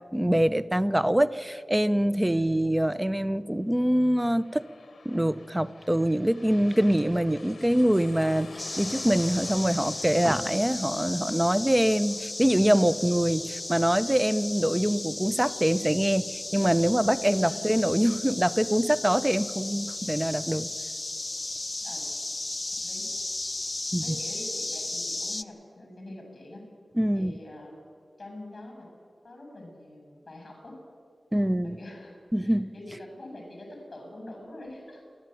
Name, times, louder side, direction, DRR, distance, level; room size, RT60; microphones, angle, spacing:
voice 1, 0.1-4.6 5.0-20.7 23.9-24.0 27.0-27.3 31.3-31.8 32.3-32.7, right 1 dB, 10° right, 13 dB, 0.7 m, -24 dB
voice 2, 2.3-2.7 17.4-17.7 21.8-22.1 22.8-23.1 24.0-26.7 27.1-27.8 28.2-28.9 29.2-30.8 31.6-35.0, left 1 dB, 45° left, 2 dB, 6.9 m, -44 dB
sound 1, 3.9-15.3 15.7-15.8, left 4 dB, 85° left, 0.8 m, -49 dB
sound 2, 8.6-25.4, left 2 dB, 30° left, 0.6 m, -35 dB
28.5 x 11.5 x 9.1 m, 2.3 s
wide cardioid pair, 95°, 0 cm